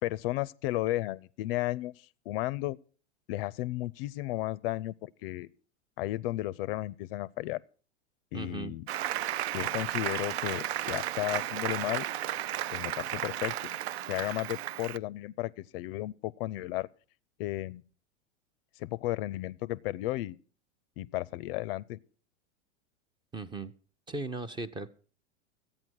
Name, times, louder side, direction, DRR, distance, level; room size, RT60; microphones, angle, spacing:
voice 1, 0.0-2.8 3.3-5.5 6.0-7.6 8.3-8.9 9.4-12.0 12.7-13.5 14.1-16.9 17.4-17.8 18.8-20.4 21.0-22.0, left 16 dB, 50° left, 0.5 m, -34 dB
voice 2, 8.3-8.7 23.3-23.7 24.1-24.9, right 3 dB, 15° right, 0.6 m, -37 dB
Applause, 8.9-15.0, right 13 dB, 60° right, 0.5 m, -34 dB
13.5 x 8.9 x 6.2 m
hypercardioid pair, 105°, 37 cm